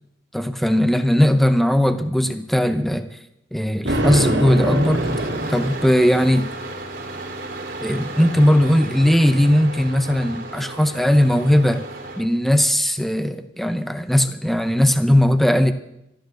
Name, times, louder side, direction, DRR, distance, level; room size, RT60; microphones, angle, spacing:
voice 1, 0.3-3.1 3.5-5.0 5.5-6.5 7.8-11.8 12.2-15.7, equal, ahead, 10 dB, 0.7 m, -18 dB
Thunder, 3.9-6.4, right 1 dB, 70° right, 2.4 m, -24 dB
Engine starting, 4.2-12.3, right 2 dB, 50° right, 2.5 m, -34 dB
13.5 x 13.0 x 6.5 m, 0.84 s
head